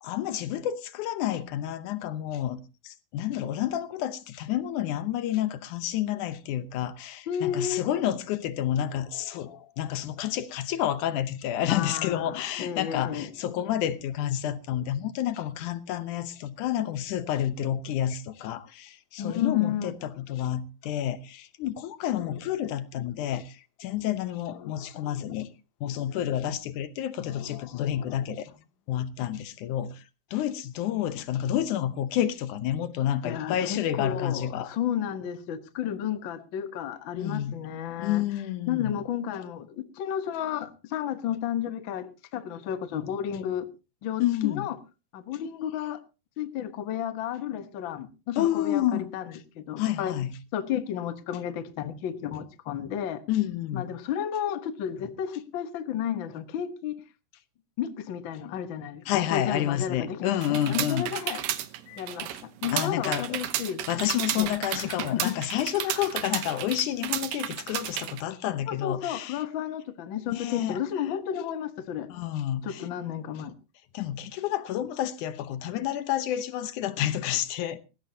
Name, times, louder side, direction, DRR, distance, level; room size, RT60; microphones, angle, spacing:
voice 1, 0.0-25.5 25.8-28.5 28.9-30.0 30.3-34.7 37.1-37.6 38.0-39.0 44.2-44.7 48.4-49.1 49.8-50.3 53.3-53.9 59.1-61.1 61.9-62.0 62.7-69.4 70.3-70.8 72.1-72.8 73.9-77.8, left 11 dB, 70° left, 2.2 m, -29 dB
voice 2, 7.3-7.8 11.7-13.3 19.2-19.9 33.2-38.2 38.7-43.7 44.0-44.8 45.1-46.0 46.4-49.2 49.5-50.1 50.5-53.2 53.7-56.9 57.8-61.4 62.0-65.3 65.8-66.0 68.7-72.1 72.6-73.5, left 9 dB, 90° left, 1.0 m, -32 dB
sound 1, 60.4-68.2, right 12 dB, 80° right, 2.7 m, -33 dB
19.0 x 15.0 x 2.8 m
omnidirectional pair, 4.1 m